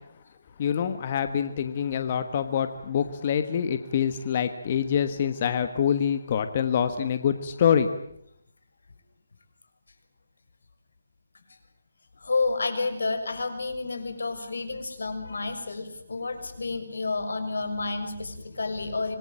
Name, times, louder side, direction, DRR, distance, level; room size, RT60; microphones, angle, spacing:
voice 1, 0.6-7.9, left 8 dB, 30° left, 10 dB, 1.3 m, -25 dB
voice 2, 12.2-19.2, left 3 dB, 85° left, 9 dB, 6.3 m, -30 dB
26.0 x 22.0 x 8.9 m, 0.72 s
hypercardioid pair, 175°, 0 cm